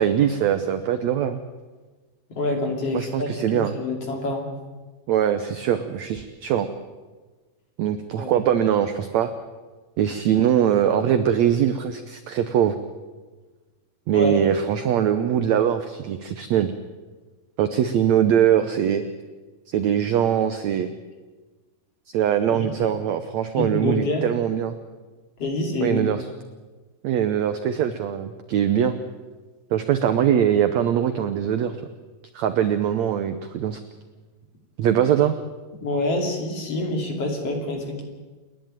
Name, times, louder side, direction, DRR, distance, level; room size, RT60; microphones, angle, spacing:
voice 1, 0.0-1.4 2.9-3.7 5.1-6.7 7.8-9.3 10.0-12.8 14.1-16.7 17.6-19.0 19.7-20.9 22.1-24.8 25.8-26.3 27.0-28.9 29.7-31.8 32.3-33.8 34.8-35.3, right 9 dB, 85° right, 10 dB, 1.5 m, -22 dB
voice 2, 2.3-4.5 8.2-8.3 14.1-14.4 22.5-22.7 23.5-24.2 25.4-26.0 35.8-38.0, left 2 dB, 45° left, 2 dB, 3.5 m, -26 dB
29.0 x 10.5 x 9.0 m, 1.3 s
omnidirectional pair, 4.3 m